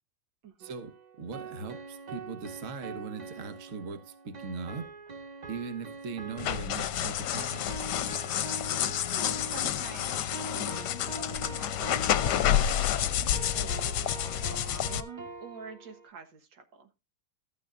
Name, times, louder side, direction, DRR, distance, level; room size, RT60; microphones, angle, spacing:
voice 1, 0.6-4.9 5.5-7.7, right 4 dB, 45° right, 1.5 m, -39 dB
sound 1, 0.6-16.1, right 3 dB, 65° right, 0.4 m, -44 dB
sound 2, 6.4-15.0, left 10 dB, 70° left, 1.2 m, -29 dB
voice 2, 9.1-13.1 13.5-16.9, right 5 dB, 80° right, 2.1 m, -48 dB
13.5 x 9.4 x 2.5 m
omnidirectional pair, 2.0 m